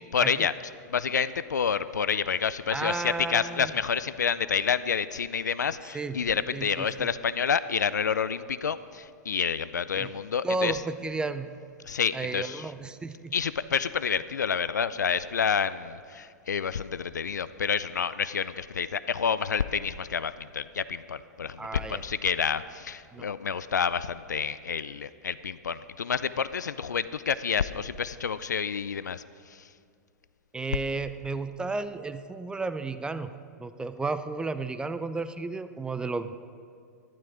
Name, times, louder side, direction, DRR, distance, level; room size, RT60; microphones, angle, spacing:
voice 1, 0.1-0.5 0.9-10.8 11.8-12.7 13.3-29.2, left 6 dB, 80° left, 15 dB, 0.4 m, -29 dB
voice 2, 2.7-3.7 5.9-6.2 6.5-7.1 10.0-10.1 10.4-11.5 12.1-13.3 21.6-22.0 23.1-23.3 30.5-33.3 33.6-36.4, right 3 dB, 10° right, 11 dB, 0.4 m, -33 dB
12.0 x 12.0 x 4.9 m, 2.3 s
figure-of-eight pair, 105°, 9 cm